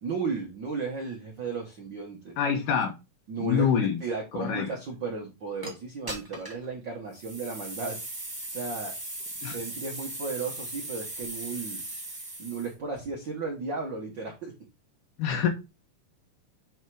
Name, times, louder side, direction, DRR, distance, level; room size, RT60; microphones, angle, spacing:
voice 1, 0.0-2.4 3.3-8.0 8.5-8.9 9.5-11.8 12.4-14.5, right 4 dB, 75° right, 0 dB, 1.0 m, -34 dB
voice 2, 2.4-2.9 3.4-4.0 4.4-4.7 9.4-9.6 15.2-15.5, left 7 dB, 80° left, 4 dB, 2.4 m, -25 dB
sound 1, 5.6-5.7 6.1-6.6 7.1-12.7, right 2 dB, 30° right, 0.4 m, -38 dB
7.2 x 3.4 x 4.6 m, 0.27 s
omnidirectional pair, 3.8 m